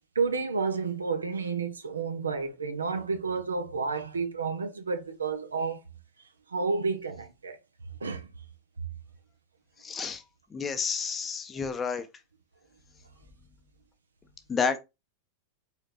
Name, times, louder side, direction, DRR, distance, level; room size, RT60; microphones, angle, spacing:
voice 1, 0.1-5.8 6.5-7.6 8.0-8.3 11.6-11.7, right 4 dB, 75° right, 0.9 m, -30 dB
voice 2, 9.8-10.2 10.5-12.1 14.5-14.8, left 5 dB, 20° left, 0.8 m, -30 dB
4.9 x 4.4 x 2.5 m
figure-of-eight pair, 90°, 0 cm